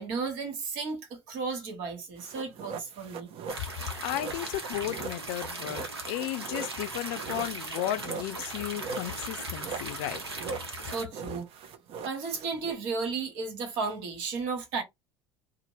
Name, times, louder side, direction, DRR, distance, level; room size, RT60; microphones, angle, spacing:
voice 1, 0.0-3.3 10.9-11.5 12.0-14.8, right 4 dB, 65° right, 1.2 m, -34 dB
sound 1, 2.2-12.7, right 5 dB, 45° right, 0.6 m, -41 dB
sound 2, 3.5-11.0, right 3 dB, 85° right, 0.7 m, -39 dB
voice 2, 4.0-10.2, left 14 dB, 60° left, 0.4 m, -34 dB
2.8 x 2.1 x 3.0 m
figure-of-eight pair, 65°, 13 cm